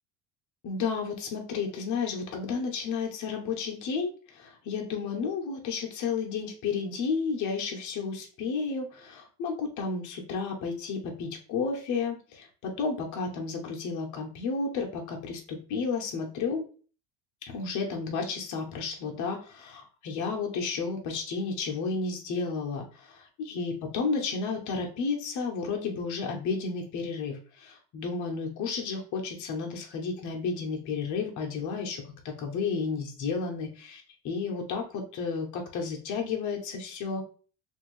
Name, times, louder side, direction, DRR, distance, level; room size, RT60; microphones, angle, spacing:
voice 1, 0.6-16.6 17.5-37.3, left 5 dB, 55° left, 0 dB, 1.0 m, -32 dB
2.9 x 2.6 x 3.1 m, 0.39 s
supercardioid pair, 105°, 35 cm